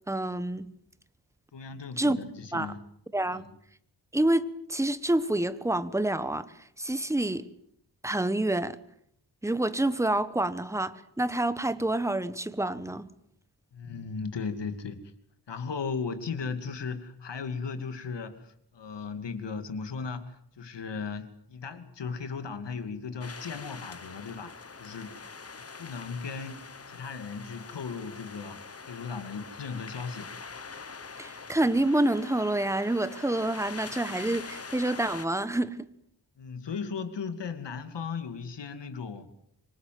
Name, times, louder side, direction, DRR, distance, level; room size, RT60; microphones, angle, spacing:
voice 1, 0.1-0.6 2.0-2.2 2.5-2.7 3.1-3.5 4.1-6.5 6.8-7.4 8.0-8.8 9.4-13.1 31.2-35.8, right 1 dB, 5° right, 1.2 m, -27 dB
voice 2, 1.5-2.8 3.3-3.4 13.7-15.1 15.5-25.1 25.5-30.3 36.4-39.3, left 5 dB, 90° left, 2.7 m, -37 dB
sound 1, 23.2-35.3, left 4 dB, 35° left, 1.4 m, -44 dB
26.0 x 24.0 x 7.8 m
wide cardioid pair, 130°, 41 cm